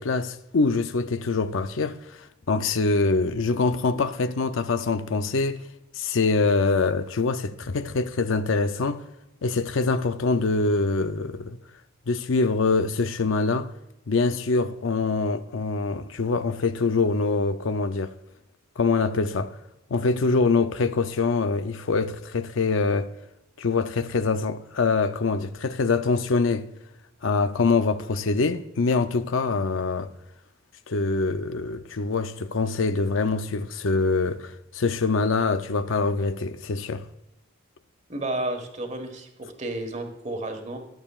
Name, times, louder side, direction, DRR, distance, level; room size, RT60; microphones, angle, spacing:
voice 1, 0.0-2.0 2.5-5.6 6.0-9.0 9.4-11.6 12.1-13.7 14.1-18.1 18.8-19.5 19.9-23.1 23.6-26.7 27.2-30.1 30.9-37.0, left 3 dB, 70° left, 0.5 m, -24 dB
voice 2, 38.1-40.8, right 1 dB, 35° right, 1.4 m, -32 dB
14.0 x 10.5 x 2.4 m
head